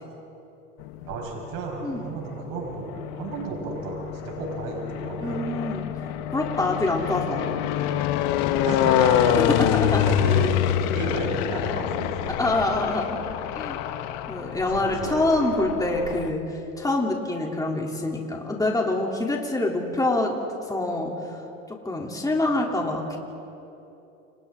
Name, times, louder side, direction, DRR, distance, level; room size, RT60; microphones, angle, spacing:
sound 1, 0.8-1.6 2.3-16.3, left 11 dB, 65° left, 1.3 m, -26 dB
voice 1, 1.1-2.8 3.1-5.4 8.6-9.4 10.0-12.7 14.7-15.3, right 4 dB, 60° right, 0 dB, 5.5 m, -32 dB
voice 2, 1.8-2.1 5.2-5.9 6.3-7.5 9.4-10.0 12.4-13.2 13.5-13.8 14.3-16.5 16.8-20.4 20.7-21.1 21.7-23.2, left 2 dB, 10° left, -1 dB, 3.2 m, -25 dB
30.0 x 28.5 x 3.8 m, 2.9 s
hypercardioid pair, 90°, 38 cm